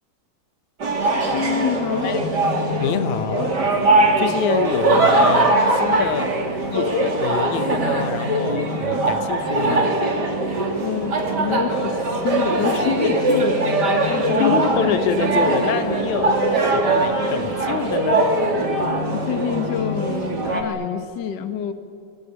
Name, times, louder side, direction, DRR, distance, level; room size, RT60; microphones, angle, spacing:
sound 1, 0.8-20.6, right 2 dB, 35° right, 3.2 m, -21 dB
voice 1, 1.3-2.2 10.8-14.5 14.9-15.0 18.6-21.7, left 8 dB, 45° left, 9 dB, 1.7 m, -27 dB
voice 2, 2.8-3.6 4.2-6.4 6.7-9.9 14.3-18.3, left 8 dB, 80° left, 11 dB, 2.4 m, -26 dB
24.0 x 23.0 x 9.7 m, 2.3 s
omnidirectional pair, 3.4 m